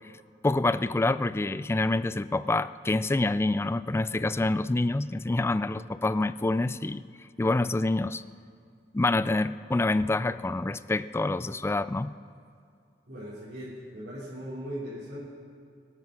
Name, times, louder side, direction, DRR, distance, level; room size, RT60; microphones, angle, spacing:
voice 1, 0.4-7.0 7.4-8.2 8.9-12.1, left 2 dB, 15° left, 15 dB, 0.3 m, -27 dB
voice 2, 13.1-15.2, equal, 60° right, -10 dB, 3.9 m, -39 dB
24.5 x 9.0 x 6.1 m, 2.4 s
head